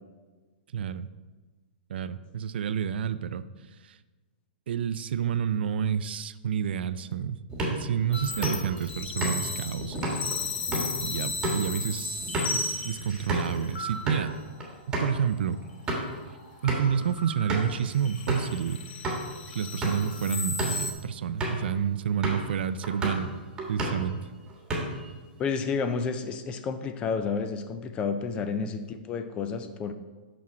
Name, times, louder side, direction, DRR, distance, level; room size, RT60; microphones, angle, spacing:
voice 1, 0.7-1.1 1.9-3.4 3.8-4.0 4.7-7.4 7.7-10.5 11.0-14.4 14.9-15.6 16.6-18.8 19.5-23.3 23.7-24.2 28.6-28.7, right 8 dB, 75° right, 14 dB, 0.4 m, -29 dB
sound 1, 7.5-13.6 13.9-14.2 14.6-14.7 14.9-15.1 15.6-16.2 16.7-17.0 17.5-17.8 18.3-18.5 19.0-19.2 19.7-20.1 20.5-20.8 21.4-21.7 22.2-22.5 22.8-23.3 23.6-24.1 24.5-25.1, right 1 dB, 15° right, 1.4 m, -32 dB
sound 2, 8.1-14.6 15.4-15.8 16.1-20.9, left 3 dB, 85° left, 1.3 m, -35 dB
voice 2, 25.4-29.9, left 5 dB, 20° left, 9 dB, 0.4 m, -30 dB
6.1 x 6.0 x 4.3 m, 1.3 s
hypercardioid pair, 160°, 6 cm